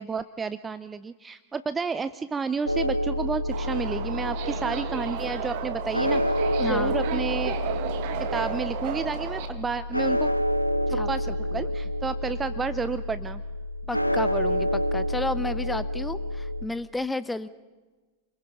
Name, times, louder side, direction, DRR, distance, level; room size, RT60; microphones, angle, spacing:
voice 1, 0.0-6.2 6.6-7.6 8.3-10.3 10.9-11.3 11.5-13.4, right 5 dB, 15° right, 14 dB, 0.6 m, -31 dB
sound 1, 2.7-16.7, equal, 90° left, 0.8 m, -28 dB
Subway metro underground, 3.5-9.5, right 9 dB, 50° right, 2.0 m, -33 dB
voice 2, 6.6-6.9 10.9-11.7 13.9-17.5, left 2 dB, 5° left, 15 dB, 1.0 m, -32 dB
28.0 x 21.5 x 5.7 m, 1.3 s
figure-of-eight pair, 90°, 0 cm